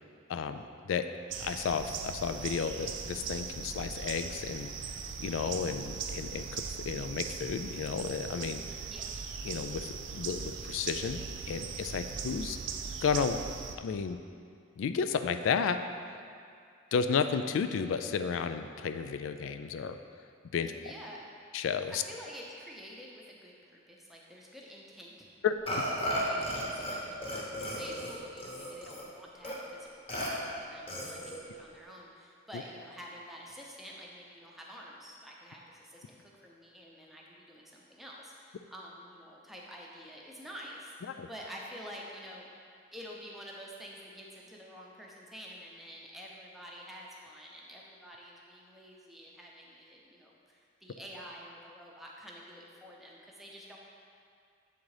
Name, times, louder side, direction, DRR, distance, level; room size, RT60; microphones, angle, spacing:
voice 1, 0.3-1.0 1.4-4.7 5.2-8.6 9.5-11.2 11.5-12.6 13.0-13.4 13.8-14.2 14.8-15.8 16.1-16.2 16.9-20.0 20.5-20.7 21.5-22.0 25.4-25.5 32.5-32.6 41.2-41.3, left 6 dB, 80° left, 9 dB, 0.3 m, -32 dB
sound 1, 1.3-13.8, right 6 dB, 65° right, 0.4 m, -39 dB
voice 2, 20.8-21.2 22.1-25.3 25.7-42.5 42.9-53.8, equal, ahead, -3 dB, 0.7 m, -48 dB
Burping eructation, 25.7-27.0 27.2-29.0 29.4-29.5 30.1-30.3 30.9-31.4, equal, 30° left, 1.0 m, -35 dB
7.2 x 3.9 x 4.8 m, 2.4 s
head